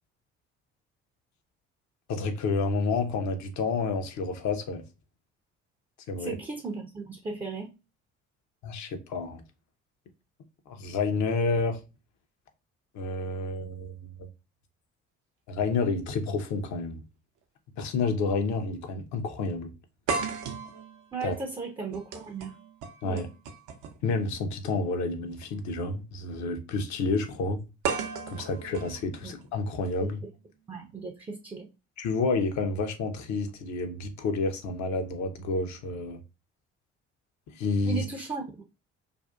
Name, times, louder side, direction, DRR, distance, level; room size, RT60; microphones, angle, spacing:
voice 1, 2.1-4.8 6.1-6.4 8.6-9.4 10.7-11.8 12.9-14.3 15.5-17.0 17.8-19.7 21.2-21.3 23.0-23.3 24.0-27.6 28.3-30.2 32.0-36.2 37.5-38.0, left 3 dB, 50° left, 0.6 m, -29 dB
voice 2, 6.2-7.7 21.1-22.6 23.0-23.3 29.2-29.3 30.0-30.3 30.7-31.7 37.8-38.4, right 4 dB, 15° right, 0.5 m, -36 dB
sound 1, 16.9-17.0 18.1-18.3 18.6-18.7 20.1-24.1 25.3-25.5 27.8-29.9, right 5 dB, 60° right, 0.6 m, -35 dB
2.6 x 2.3 x 2.2 m
hypercardioid pair, 50°, 36 cm